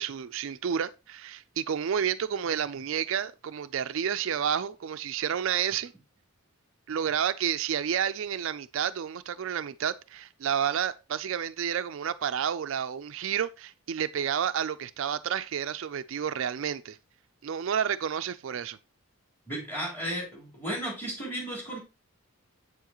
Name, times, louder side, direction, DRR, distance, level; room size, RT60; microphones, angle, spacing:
voice 1, 0.0-5.9 6.9-17.0 17.4-18.8, right 8 dB, 60° right, 0.4 m, -30 dB
voice 2, 19.5-21.8, right 1 dB, 10° left, 3.8 m, -34 dB
8.1 x 7.1 x 3.0 m
head